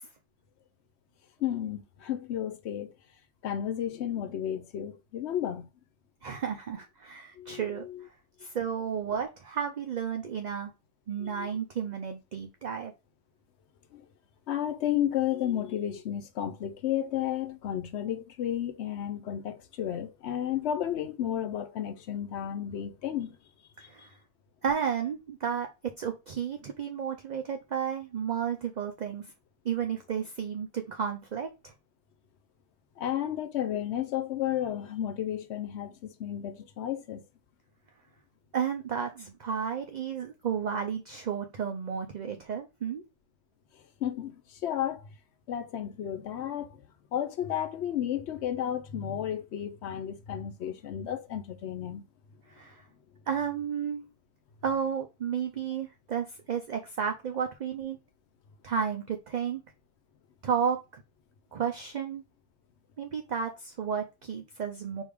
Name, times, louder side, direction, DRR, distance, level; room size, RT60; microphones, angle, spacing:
voice 1, 1.4-2.9 3.4-5.7 7.4-8.0 11.2-11.5 13.9-14.0 14.5-23.4 23.8-24.1 33.0-37.2 44.0-45.1 45.5-46.8 47.1-52.0, left 10 dB, 70° left, 0.9 m, -32 dB
voice 2, 6.2-7.9 8.4-10.7 11.1-12.9 23.8-24.2 24.6-29.3 29.6-31.7 38.5-43.0 52.5-52.8 53.3-54.0 54.6-58.0 58.6-59.6 60.4-61.0 61.5-62.2 63.0-65.0, right 7 dB, 50° right, 0.5 m, -32 dB
4.9 x 2.6 x 3.4 m
omnidirectional pair, 1.2 m